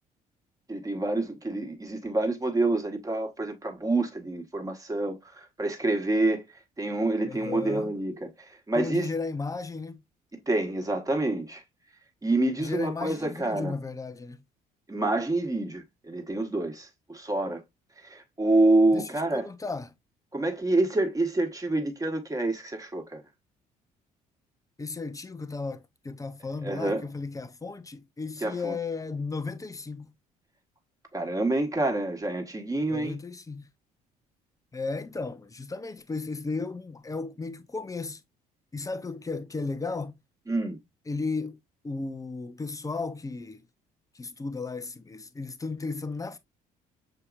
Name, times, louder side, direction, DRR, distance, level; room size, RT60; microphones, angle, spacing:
voice 1, 0.7-6.4 6.8-9.1 10.5-11.6 12.2-13.8 14.9-17.6 18.0-19.5 20.3-23.2 26.6-27.1 28.4-28.8 31.1-33.2 40.5-40.8, right 2 dB, 15° right, 1.4 m, -27 dB
voice 2, 7.2-7.9 8.7-10.0 12.6-14.4 18.9-19.9 24.8-30.1 32.9-33.7 34.7-38.2 38.7-40.1 41.1-43.7 44.1-46.4, left 3 dB, 15° left, 0.6 m, -35 dB
6.7 x 2.9 x 2.4 m
hypercardioid pair, 55°, 20 cm